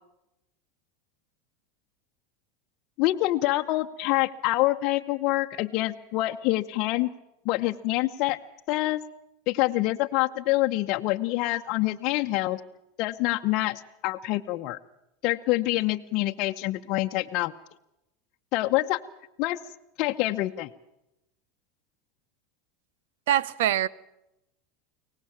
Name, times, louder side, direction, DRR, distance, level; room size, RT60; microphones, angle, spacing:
voice 1, 3.0-7.1 7.4-8.4 8.7-9.0 9.5-12.6 13.0-14.8 15.2-17.5 18.5-19.0 19.4-19.6 20.0-20.7, left 18 dB, 55° left, 0.9 m, -26 dB
voice 2, 23.3-23.9, right 11 dB, 75° right, 0.8 m, -23 dB
24.0 x 18.5 x 7.3 m
hypercardioid pair, 110°, 0 cm